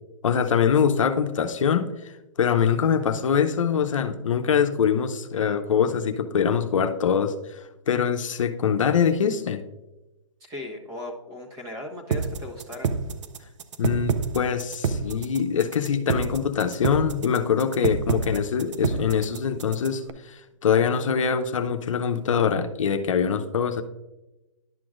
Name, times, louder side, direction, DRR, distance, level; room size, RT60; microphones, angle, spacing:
voice 1, 0.2-2.1 2.4-7.6 7.9-9.6 13.8-23.8, left 7 dB, 70° left, 7 dB, 0.7 m, -23 dB
voice 2, 10.4-12.9, left 1 dB, 20° right, 1 dB, 1.3 m, -37 dB
sound 1, 12.1-20.1, right 5 dB, 65° right, 0.6 m, -27 dB
11.0 x 6.0 x 2.5 m, 1.0 s
hypercardioid pair, 145°, 17 cm